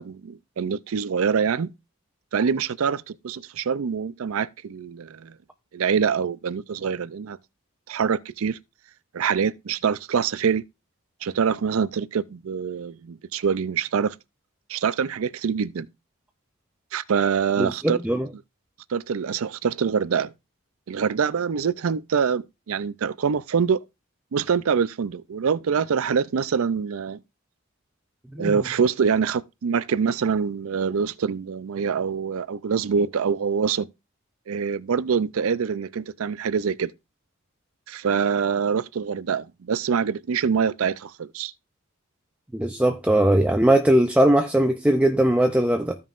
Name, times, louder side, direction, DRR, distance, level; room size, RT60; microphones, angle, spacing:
voice 1, 0.0-1.7 2.3-5.3 5.7-7.4 7.9-8.6 9.1-10.6 11.2-14.2 14.7-15.9 16.9-18.0 18.9-20.3 20.9-23.8 24.3-27.2 28.4-33.9 34.5-36.9 37.9-41.5, right 6 dB, 65° right, 0.4 m, -25 dB
voice 2, 17.6-18.3 28.3-28.5 42.5-46.0, right 1 dB, 5° right, 0.4 m, -20 dB
15.0 x 5.5 x 2.5 m
head